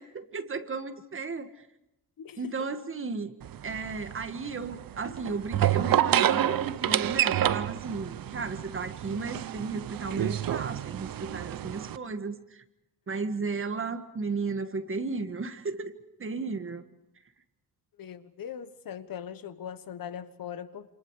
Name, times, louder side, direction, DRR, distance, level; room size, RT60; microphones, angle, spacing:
voice 1, 0.0-1.7 2.4-3.3 3.6-12.6 13.1-15.9 16.2-16.8, right 4 dB, 30° right, 1.7 m, -34 dB
voice 2, 2.2-2.5 18.0-20.9, left 8 dB, 60° left, 1.4 m, -40 dB
sound 1, 3.4-12.0, right 11 dB, 60° right, 0.8 m, -29 dB
28.5 x 28.0 x 4.9 m
wide cardioid pair, 180°, 39 cm